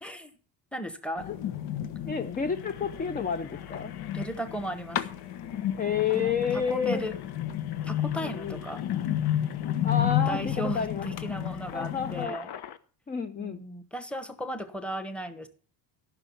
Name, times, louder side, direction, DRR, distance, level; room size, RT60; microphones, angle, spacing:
voice 1, 0.0-0.3 0.7-1.3 4.1-5.1 6.1-7.2 7.8-8.8 10.3-12.5 13.4-15.5, right 1 dB, 5° left, 9 dB, 1.0 m, -36 dB
sound 1, 1.2-12.3, left 11 dB, 75° left, 1.4 m, -32 dB
Engine, 1.4-1.6 2.1-12.8, left 9 dB, 55° left, 1.0 m, -48 dB
voice 2, 2.0-3.9 5.8-7.0 8.2-8.6 9.8-11.1 11.7-12.4 13.1-13.6, left 7 dB, 20° left, 10 dB, 0.5 m, -30 dB
14.5 x 6.4 x 7.0 m, 0.41 s
cardioid pair, 160°, 45 cm